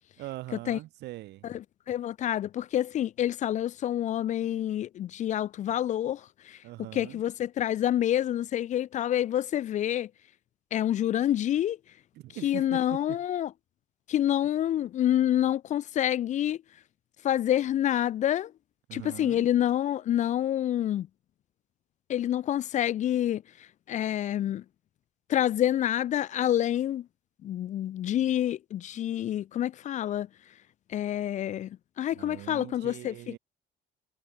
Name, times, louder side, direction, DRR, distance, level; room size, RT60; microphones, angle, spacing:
voice 1, 0.2-1.5 6.6-7.2 12.1-13.2 18.9-19.4 32.1-33.4, right 17 dB, 80° right, 5.5 m, -42 dB
voice 2, 1.9-6.6 6.9-10.1 10.7-11.8 12.4-13.5 14.1-16.6 17.2-18.5 18.9-21.1 22.1-23.4 23.9-24.6 25.3-27.1 27.4-30.3 30.9-33.4, left 11 dB, 45° left, 0.4 m, -27 dB
cardioid pair, 110°, 17 cm